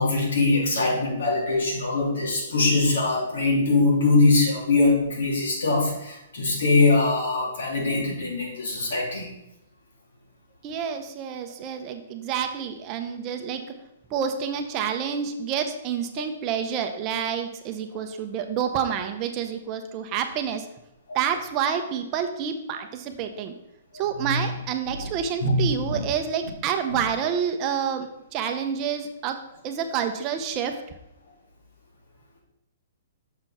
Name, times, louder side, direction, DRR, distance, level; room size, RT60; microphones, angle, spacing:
voice 1, 0.0-9.3 24.2-24.3 24.9-25.1 25.4-25.6 25.8-26.0, left 3 dB, 80° left, -2 dB, 2.8 m, -22 dB
voice 2, 10.6-13.6 14.1-20.7 21.1-23.5 23.9-29.4 29.6-30.8, right 7 dB, 25° right, 6 dB, 0.6 m, -28 dB
6.6 x 4.4 x 5.9 m, 0.84 s
hypercardioid pair, 165°, 0 cm